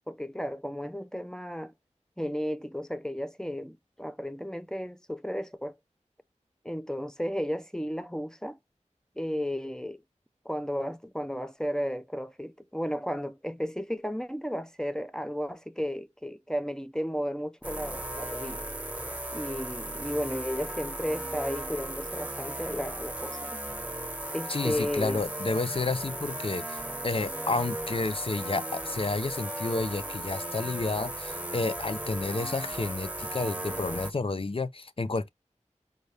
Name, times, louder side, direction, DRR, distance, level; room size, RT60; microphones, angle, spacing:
voice 1, 0.1-1.7 2.2-5.8 6.6-8.6 9.2-10.0 10.4-18.7 19.3-23.6 24.3-25.2, equal, 5° left, 0.5 m, -34 dB
sound 1, 17.6-34.1, right 1 dB, 10° right, 0.9 m, -36 dB
voice 2, 24.5-35.3, left 3 dB, 45° left, 0.6 m, -31 dB
5.5 x 2.2 x 3.3 m
wide cardioid pair, 55°, 13 cm